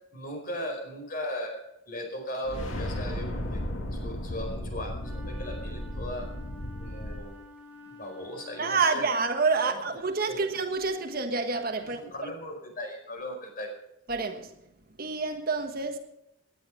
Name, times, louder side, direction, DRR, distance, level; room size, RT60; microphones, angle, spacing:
voice 1, 0.1-3.6 3.9-6.3 6.8-7.4 7.8-9.0 10.3-10.5 11.8-13.7, left 1 dB, 45° left, 4.8 m, -38 dB
Rocketship Taking Off, 2.4-7.2, left 1 dB, 85° left, 2.2 m, -35 dB
Wind instrument woodwind instrument, 5.0-9.5, left 2 dB, 10° right, 3.6 m, -49 dB
voice 2, 8.6-12.0 14.1-14.5 15.0-16.0, right 4 dB, 45° right, 1.4 m, -28 dB
18.5 x 10.5 x 5.1 m
head